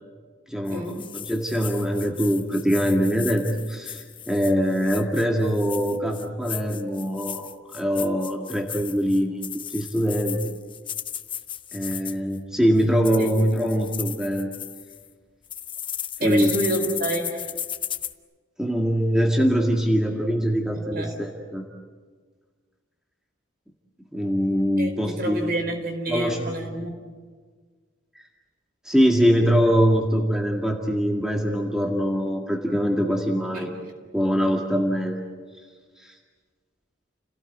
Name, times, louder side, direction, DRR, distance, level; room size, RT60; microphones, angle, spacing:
voice 1, 0.5-9.4 9.7-10.4 11.7-14.5 16.2-16.5 18.6-21.6 24.1-25.6 26.1-26.6 28.8-33.7 34.1-35.2 36.0-36.2, equal, 5° right, 0 dB, 1.9 m, -23 dB
sound 1, 0.7-12.4 12.8-15.1 15.5-18.1, left 10 dB, 25° left, 0.8 m, -35 dB
voice 2, 16.2-17.4 20.9-21.1 24.8-26.9 33.5-33.7, right 1 dB, 50° right, 4 dB, 4.4 m, -28 dB
30.0 x 17.5 x 9.2 m, 1.5 s
head